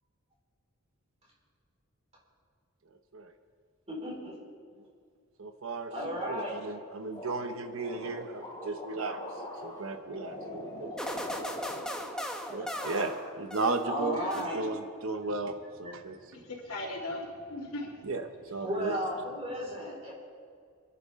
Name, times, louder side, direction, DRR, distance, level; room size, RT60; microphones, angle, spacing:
voice 1, 3.9-4.4 5.9-6.6 13.8-14.7 18.6-20.1, equal, 30° right, -4 dB, 4.9 m, -34 dB
voice 2, 5.4-9.2 9.6-10.9 12.5-15.5 15.8-16.2 18.0-18.9, right 3 dB, 65° right, 6 dB, 0.9 m, -35 dB
sound 1, 7.1-12.4 12.7-13.4 13.8-14.6, left 1 dB, 20° left, 4.9 m, -43 dB
sound 2, 11.0-13.9 14.3-15.0, equal, 5° left, 1.1 m, -38 dB
voice 3, 16.6-18.2 18.4-19.8, left 1 dB, 85° left, -5 dB, 3.1 m, -40 dB
27.5 x 11.0 x 3.7 m, 2.2 s
head